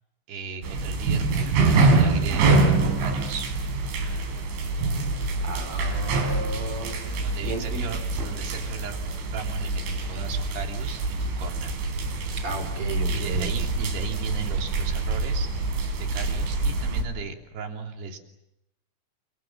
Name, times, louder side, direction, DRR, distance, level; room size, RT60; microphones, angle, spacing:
voice 1, 0.3-2.6 3.0-3.5 7.2-9.0 9.3-11.8 13.1-18.2, right 4 dB, 60° right, 3 dB, 5.1 m, -36 dB
sound 1, 0.6-17.0, right 3 dB, 80° right, 6.4 m, -25 dB
voice 2, 5.4-7.0 7.4-7.8 12.4-13.5, right 2 dB, 30° right, 8 dB, 4.1 m, -33 dB
29.5 x 26.0 x 7.3 m, 0.85 s
omnidirectional pair, 5.5 m